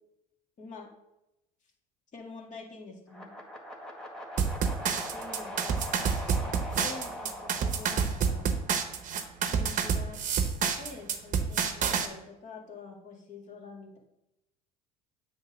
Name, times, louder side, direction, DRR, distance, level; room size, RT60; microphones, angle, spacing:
voice 1, 0.6-0.9 2.1-3.4 5.1-5.8 6.4-8.5 9.5-10.2 10.8-14.0, left 3 dB, 40° left, 0 dB, 2.0 m, -46 dB
sound 1, 3.1-9.2, equal, 5° left, 1.9 m, -42 dB
sound 2, 4.4-12.1, right 6 dB, 45° right, 0.9 m, -28 dB
8.0 x 3.3 x 6.0 m, 0.88 s
hypercardioid pair, 75°, 18 cm